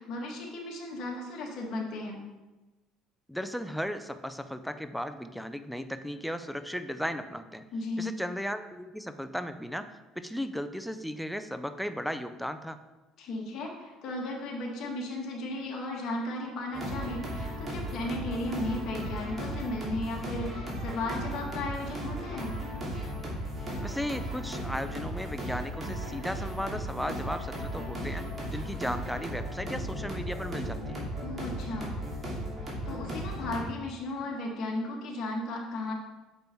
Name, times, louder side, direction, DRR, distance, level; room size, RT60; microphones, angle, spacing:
voice 1, 0.0-2.2 7.7-8.1 13.2-22.5 31.2-31.9 32.9-35.9, left 2 dB, 55° left, -1 dB, 1.9 m, -35 dB
voice 2, 3.3-7.6 8.0-12.8 23.8-28.3 28.5-31.0, equal, ahead, 9 dB, 0.4 m, -35 dB
sound 1, 16.7-33.6, equal, 25° right, 2.5 m, -36 dB
6.8 x 5.3 x 4.5 m, 1.1 s
cardioid pair, 115°, 0 cm